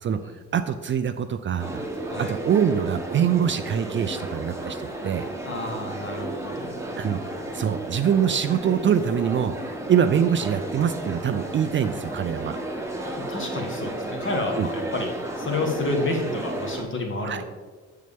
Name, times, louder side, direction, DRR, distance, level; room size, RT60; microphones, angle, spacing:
voice 1, 0.5-1.8 2.2-5.3 7.0-7.2 7.5-9.6 9.9-12.6 14.6-14.7 17.2-17.4, right 8 dB, 40° right, 10 dB, 0.4 m, -24 dB
sound 1, 1.6-16.8, right 1 dB, 10° right, 1.1 m, -33 dB
voice 2, 5.4-7.0 13.2-17.4, left 2 dB, 40° left, 2 dB, 1.5 m, -30 dB
6.6 x 6.5 x 3.5 m, 1.4 s
cardioid pair, 90°, 30 cm